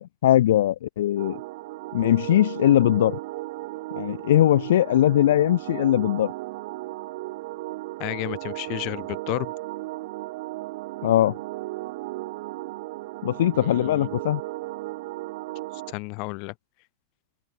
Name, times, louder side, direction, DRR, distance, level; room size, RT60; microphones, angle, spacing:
voice 1, 0.0-1.4 1.9-3.2 3.9-6.3 11.0-11.3 13.2-14.4, left 12 dB, 60° left, 0.3 m, -20 dB
sound 1, 1.2-15.9, right 20 dB, 50° right, 8.0 m, -35 dB
voice 2, 8.0-9.5 13.5-14.1 15.9-16.5, left 31 dB, 45° left, 2.4 m, -32 dB
open air
figure-of-eight pair, 90°, 0 cm